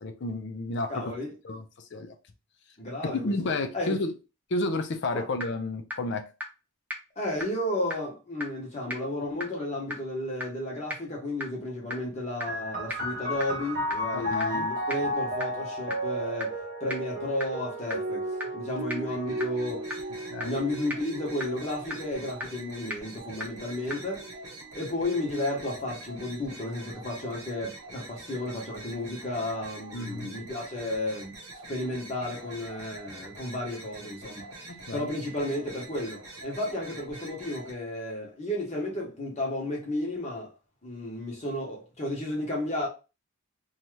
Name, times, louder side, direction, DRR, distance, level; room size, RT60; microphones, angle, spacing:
voice 1, 0.0-1.1 1.4-2.2 3.1-4.1 4.5-6.3 14.1-14.7 20.3-20.6 29.9-30.3 34.7-35.1, left 2 dB, 50° left, 0.5 m, -31 dB
voice 2, 0.9-1.4 2.8-3.2 3.7-4.0 5.1-5.3 7.2-18.3 18.5-19.9 20.4-24.3 24.7-31.3 31.7-40.5 40.8-42.9, left 1 dB, 30° left, 0.9 m, -33 dB
sound 1, 5.4-5.5 5.9-6.0 6.4-6.5 6.9-7.0 7.4-7.5 7.9-8.0 8.4-8.5 8.9-9.0 9.4-9.5 9.9-10.0 10.4-10.5 10.9-11.0 11.4-11.5 11.9-12.0 12.4-12.5 12.9-13.0 13.4-13.5 13.9-14.0 14.4-14.5 14.9-15.0 15.4-15.5 15.9-16.0 16.4-16.5 16.9-17.0 17.4-17.5 17.9-18.0 18.4-18.5 18.9-19.0 19.4-19.5 19.9-20.0 20.4-20.5 20.9-21.0 21.4-21.5 21.9-22.0 22.4-22.5 22.9-23.0 23.4-23.5 23.9-24.0, left 1 dB, 5° right, 0.4 m, -32 dB
sound 2, 12.5-25.7 26.6-27.3, equal, 40° right, 0.7 m, -34 dB
sound 3, 19.0-37.7, right 2 dB, 80° right, 0.9 m, -45 dB
2.7 x 2.3 x 3.1 m
head